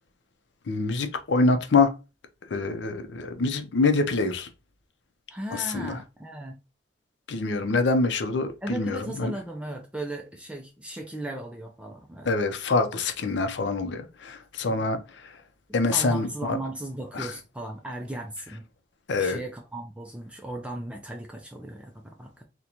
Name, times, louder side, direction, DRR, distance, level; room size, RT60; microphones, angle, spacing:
voice 1, 0.7-1.9 2.5-4.5 5.5-6.0 7.3-9.3 12.3-15.0 15.7-16.6 17.2-17.3 19.1-19.4, left 3 dB, 70° left, 0.5 m, -25 dB
voice 2, 5.3-6.6 8.6-12.3 14.7-14.9 15.7-18.6 19.1-22.4, right 1 dB, 5° right, 0.3 m, -37 dB
3.8 x 2.2 x 2.9 m
head